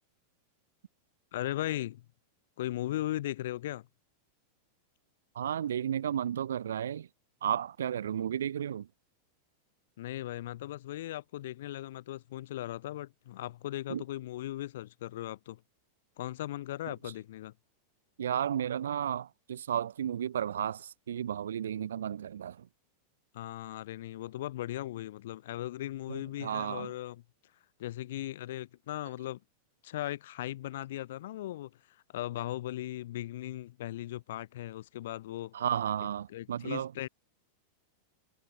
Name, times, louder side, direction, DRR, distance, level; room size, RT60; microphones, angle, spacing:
voice 1, 1.3-2.1 2.6-3.9 10.0-15.6 16.2-17.5 23.3-27.2 27.8-29.4 29.8-35.5 36.3-37.1, left 14 dB, 55° left, 0.8 m, -38 dB
voice 2, 5.4-7.1 7.4-8.9 13.9-14.0 17.0-17.1 18.2-22.7 26.1-26.9 35.5-36.9, right 9 dB, 65° right, 1.9 m, -33 dB
figure-of-eight pair, 90°, 0 cm